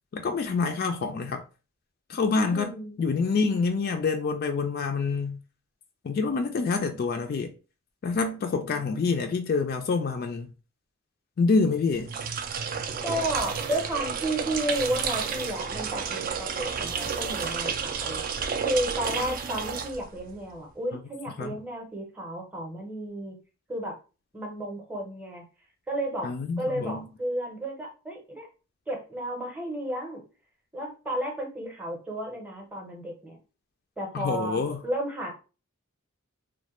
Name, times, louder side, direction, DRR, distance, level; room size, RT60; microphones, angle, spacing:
voice 1, 0.1-1.4 2.1-5.4 6.0-7.5 8.0-10.5 11.4-12.1 21.4-21.6 26.2-27.0 34.1-34.8, left 4 dB, 45° left, 0.3 m, -27 dB
voice 2, 2.3-3.0 13.0-23.4 23.7-24.0 24.3-25.4 25.9-26.3 26.6-28.5 28.9-30.2 30.7-33.4 34.0-35.3, right 1 dB, 5° right, 0.7 m, -32 dB
sound 1, 12.0-20.4, right 6 dB, 40° right, 0.3 m, -31 dB
sound 2, 13.0-20.1, right 3 dB, 70° right, 0.6 m, -44 dB
3.1 x 2.1 x 2.9 m
head